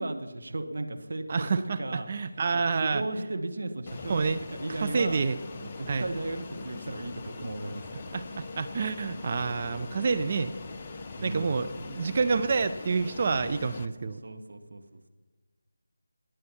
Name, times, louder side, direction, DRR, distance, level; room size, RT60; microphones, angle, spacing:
voice 1, 0.0-2.1 2.5-5.2 5.6-8.1 11.2-11.6 14.2-15.1, right 2 dB, 60° right, 6 dB, 1.3 m, -35 dB
voice 2, 1.3-3.0 4.1-4.4 4.7-5.4 5.9-6.1 8.1-10.5 11.2-14.2, right 4 dB, 35° right, 9 dB, 0.5 m, -28 dB
Fixed-wing aircraft airplane, 3.9-13.9, left 3 dB, 25° left, 0.8 m, -42 dB
20.5 x 7.7 x 5.7 m, 1.3 s
figure-of-eight pair, 165°, 0 cm